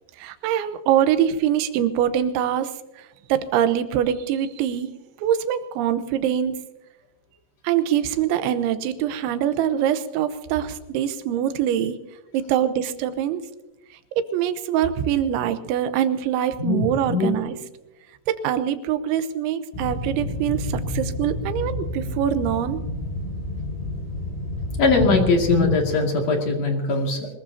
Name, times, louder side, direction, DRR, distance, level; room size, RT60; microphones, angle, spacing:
voice 1, 0.2-2.7 3.0-4.9 5.2-6.6 7.6-12.0 12.3-13.4 14.2-17.6 18.3-22.8, right 10 dB, 85° right, 10 dB, 3.3 m, -24 dB
voice 2, 16.6-17.3 24.8-27.3, left 3 dB, 45° left, 1 dB, 2.9 m, -21 dB
sound 1, 19.7-25.8, left 1 dB, 80° left, 9.7 m, -30 dB
24.0 x 21.0 x 2.8 m, 1.0 s
omnidirectional pair, 5.3 m